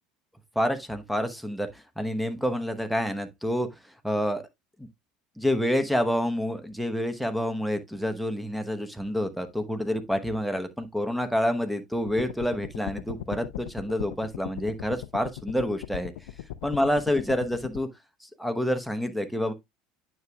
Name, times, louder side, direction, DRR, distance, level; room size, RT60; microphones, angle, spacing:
voice 1, 0.5-3.7 4.0-4.5 4.8-4.9 5.4-16.1 16.6-17.9 18.2-19.5, equal, ahead, 1.0 m, -28 dB
sound 1, 12.1-17.8, left 13 dB, 70° left, 0.4 m, -39 dB
9.3 x 6.1 x 2.3 m
figure-of-eight pair, 70°, 0 cm